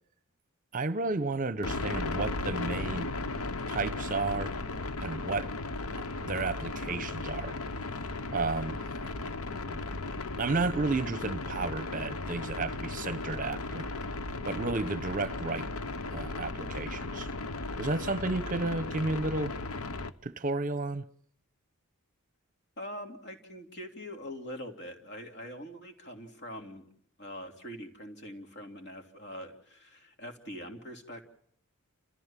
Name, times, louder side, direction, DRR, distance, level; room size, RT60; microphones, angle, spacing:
voice 1, 0.7-3.1 3.7-4.5 5.0-5.5 6.2-7.6 8.3-9.1 9.7-9.8 10.4-13.9 14.4-15.7 16.1-17.3 17.8-19.5 20.2-21.0, right 3 dB, 35° right, 0.8 m, -32 dB
sound 1, 1.6-20.1, left 2 dB, 70° left, 1.1 m, -36 dB
voice 2, 22.8-26.9 27.2-31.2, equal, 50° left, 3.4 m, -43 dB
29.5 x 15.0 x 7.4 m
head